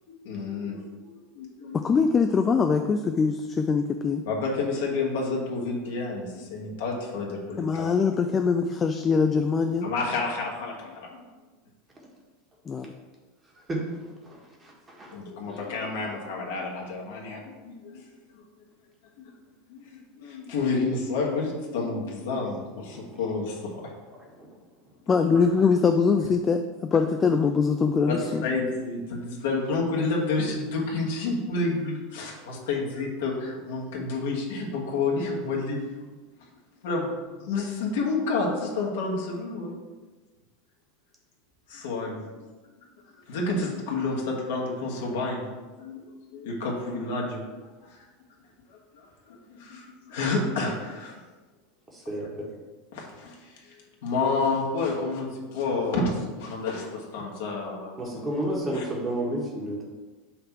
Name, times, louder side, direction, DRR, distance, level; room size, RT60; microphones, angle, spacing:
voice 1, 0.2-1.8 4.2-7.9 9.8-11.2 15.1-18.0 18.3-18.4 19.2-19.3 19.7-23.9 28.1-35.9 36.4-36.5 36.8-37.1 37.4-39.8 41.7-42.5 43.3-45.4 45.8-46.0 46.3-47.5 47.8-48.1 48.7-51.1 52.9-58.2 58.7-58.8, left 3 dB, 60° left, -2 dB, 1.4 m, -30 dB
voice 2, 1.7-4.3 7.6-9.9 12.7-12.9 25.1-28.4, left 5 dB, 25° left, 6 dB, 0.4 m, -23 dB
voice 3, 52.1-52.5 58.0-59.8, right 1 dB, 20° right, -2 dB, 1.6 m, -30 dB
5.8 x 3.3 x 5.8 m, 1.3 s
figure-of-eight pair, 80°, 0 cm